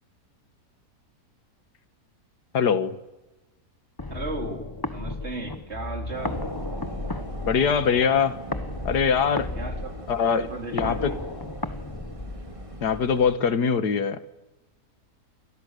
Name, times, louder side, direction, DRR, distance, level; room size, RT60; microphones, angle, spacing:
voice 1, 2.5-2.9 7.4-8.4 8.9-9.5 10.1-10.5 10.7-11.1 12.8-14.2, left 6 dB, 75° left, 11 dB, 2.0 m, -22 dB
sound 1, 4.0-12.9, left 2 dB, 15° left, 1.0 m, -34 dB
voice 2, 4.1-6.4 9.6-9.9 10.4-11.2, right 2 dB, 40° right, 3 dB, 4.0 m, -35 dB
sound 2, 6.1-13.4, right 1 dB, 20° right, 3.4 m, -41 dB
29.5 x 28.5 x 6.7 m, 1.1 s
omnidirectional pair, 1.8 m